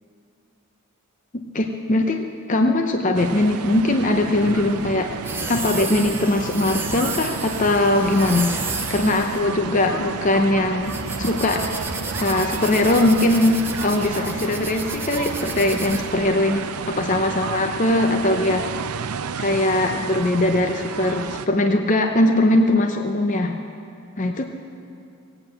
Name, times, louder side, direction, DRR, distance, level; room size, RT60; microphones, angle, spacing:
voice 1, 1.3-5.1 5.5-8.5 8.9-11.7 12.2-18.9 19.4-23.5 24.2-24.4, left 1 dB, 35° left, 4 dB, 0.7 m, -21 dB
sound 1, 3.1-21.5, right 6 dB, 90° right, 0.5 m, -31 dB
sound 2, 4.2-17.2, right 3 dB, 10° right, 0.8 m, -32 dB
17.5 x 8.9 x 7.7 m, 2.5 s
head